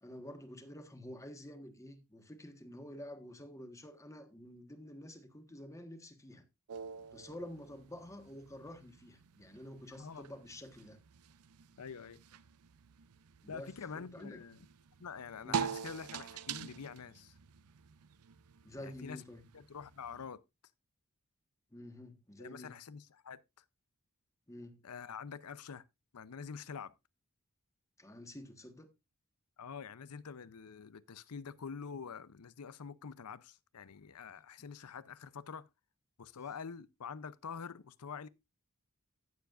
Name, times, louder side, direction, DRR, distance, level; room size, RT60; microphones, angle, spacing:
voice 1, 0.0-6.4 7.1-11.0 13.4-14.4 15.4-15.7 18.6-19.4 21.7-22.7 24.5-24.8 28.0-28.9, left 1 dB, 15° left, 1.5 m, -49 dB
sound 1, 6.7-20.3, right 7 dB, 75° right, 0.5 m, -45 dB
voice 2, 11.8-12.2 13.5-14.6 15.0-17.4 18.8-19.2 19.5-20.4 22.4-23.6 24.8-25.8 26.1-26.9 29.6-35.7 36.2-38.3, left 6 dB, 85° left, 0.6 m, -46 dB
16.0 x 7.1 x 2.5 m
head